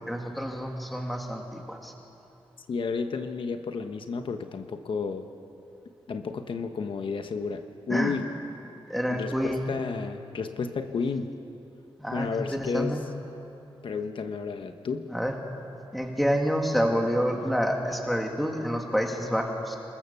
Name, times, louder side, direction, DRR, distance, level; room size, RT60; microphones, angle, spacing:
voice 1, 0.1-1.9 7.9-8.1 8.9-9.6 12.0-13.0 15.1-15.3 15.9-19.8, equal, ahead, 1 dB, 2.4 m, -28 dB
voice 2, 2.7-5.3 6.1-8.3 9.1-11.3 12.1-13.0 13.8-15.1, left 5 dB, 60° left, 7 dB, 1.1 m, -32 dB
27.5 x 22.0 x 7.0 m, 2.8 s
wide cardioid pair, 170°, 10 cm